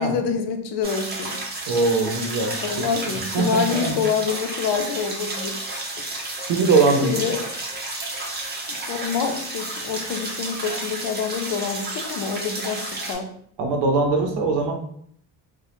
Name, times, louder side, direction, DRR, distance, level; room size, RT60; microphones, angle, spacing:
voice 1, 0.0-1.4 2.6-5.7 7.0-7.4 8.7-13.3, left 6 dB, 75° left, 5 dB, 0.5 m, -26 dB
sound 1, 0.8-13.1, right 2 dB, 25° right, 0.4 m, -31 dB
voice 2, 1.7-3.9 6.5-7.2 13.6-14.7, right 3 dB, 75° right, 3 dB, 0.6 m, -22 dB
2.1 x 2.0 x 2.9 m, 0.66 s
cardioid pair, 135°, 42 cm